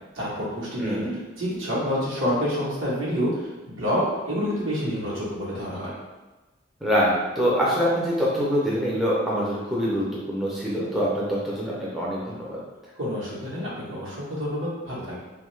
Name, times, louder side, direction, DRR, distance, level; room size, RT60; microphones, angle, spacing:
voice 1, 0.1-1.0 1.4-3.3 3.7-5.9 13.0-15.2, equal, 80° right, -6 dB, 1.0 m, -28 dB
voice 2, 0.8-1.1 6.8-12.6, equal, ahead, -7 dB, 0.5 m, -25 dB
2.6 x 2.3 x 3.1 m, 1.2 s
head